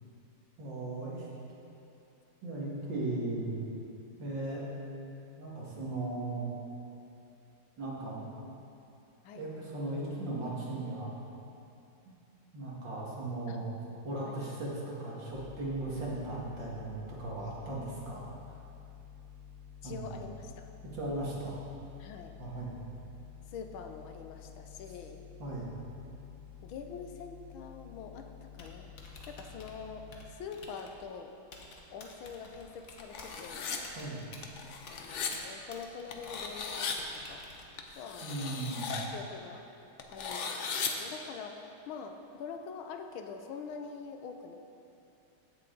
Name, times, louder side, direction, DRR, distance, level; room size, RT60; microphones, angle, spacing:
voice 1, 0.6-1.3 2.4-3.7 4.2-4.7 5.4-6.5 7.8-8.2 9.4-11.1 12.5-13.7 14.0-18.3 19.8-20.1 20.9-21.6 22.4-22.7 25.4-25.7 34.0-34.3 38.2-39.1, right 2 dB, 65° right, -5 dB, 2.6 m, -37 dB
sound 1, 15.3-30.3, left 8 dB, 45° right, 0.9 m, -51 dB
voice 2, 19.8-20.6 22.0-22.4 23.5-25.2 26.6-28.9 29.3-31.3 31.6-33.7 34.9-37.4 37.9-38.7 39.1-39.7 40.1-44.6, left 5 dB, 90° left, 5 dB, 1.5 m, -45 dB
Typing, 28.4-38.0, left 2 dB, 50° left, 1.2 m, -52 dB
sound 2, 32.9-33.8 34.4-35.3 36.1-37.0 37.8-39.1 40.0-40.9, left 6 dB, 70° left, 0.6 m, -37 dB
15.0 x 6.9 x 3.9 m, 2.8 s
omnidirectional pair, 2.2 m